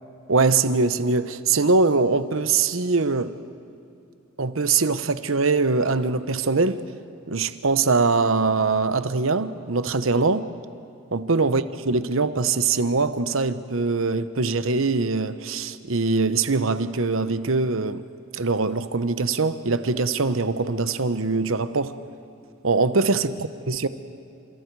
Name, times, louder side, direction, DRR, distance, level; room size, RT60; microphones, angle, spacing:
voice 1, 0.3-3.3 4.4-6.8 7.3-10.5 11.1-18.1 18.3-22.0 22.6-23.4 23.7-23.9, right 4 dB, 75° right, 1.0 m, -22 dB
30.0 x 28.0 x 4.8 m
head